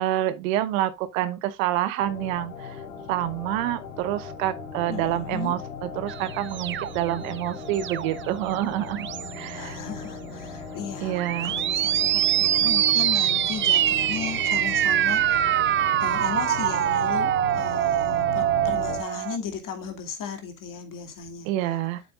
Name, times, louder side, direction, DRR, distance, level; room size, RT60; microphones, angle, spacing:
voice 1, 0.0-2.8 3.1-9.1 9.4-9.8 11.0-11.5 21.4-22.0, right 13 dB, 85° right, 1.0 m, -27 dB
sound 1, 2.0-19.0, left 4 dB, 85° left, 3.2 m, -37 dB
voice 2, 4.9-5.6 9.5-15.5 16.0-21.5, left 6 dB, 55° left, 2.4 m, -36 dB
sound 2, 6.1-8.3 8.9-9.5 11.1-19.4, right 12 dB, 30° right, 0.4 m, -24 dB
7.9 x 7.8 x 2.4 m
hypercardioid pair, 70°, 40 cm